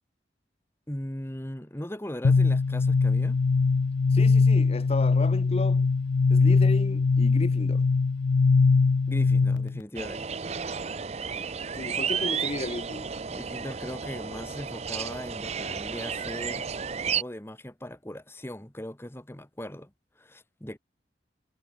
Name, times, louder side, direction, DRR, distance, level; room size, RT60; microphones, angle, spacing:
voice 1, 0.9-3.4 9.1-10.4 13.3-16.7 17.0-20.8, equal, 15° left, 1.6 m, -39 dB
sound 1, 2.2-9.8, left 4 dB, 90° left, 0.5 m, -22 dB
voice 2, 4.1-5.9 6.3-7.9 11.8-13.1, left 2 dB, 35° left, 0.7 m, -34 dB
sound 2, 10.0-17.2, right 6 dB, 35° right, 0.7 m, -32 dB
head